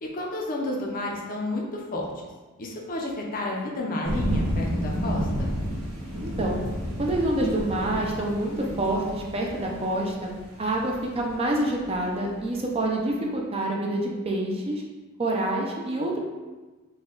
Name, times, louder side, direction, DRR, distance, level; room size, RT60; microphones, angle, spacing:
voice 1, 0.0-2.1 2.6-5.5, left 1 dB, 40° left, -1 dB, 0.5 m, -31 dB
sound 1, 4.0-12.3, equal, 75° right, 1.2 m, -31 dB
voice 2, 6.2-6.6 7.0-10.3 10.6-14.8 15.2-16.2, right 1 dB, 25° right, -1 dB, 0.4 m, -27 dB
4.1 x 2.2 x 3.7 m, 1.2 s
head